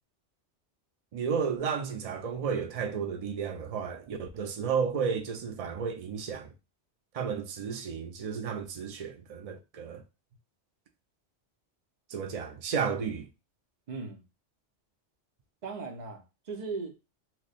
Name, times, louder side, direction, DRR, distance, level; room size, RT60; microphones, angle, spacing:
voice 1, 1.1-6.5 7.1-10.0 12.1-13.3, right 6 dB, 75° right, 0.3 m, -32 dB
voice 2, 13.9-14.2 15.6-17.0, right 4 dB, 45° right, 0.7 m, -38 dB
3.0 x 2.2 x 3.9 m
omnidirectional pair, 1.2 m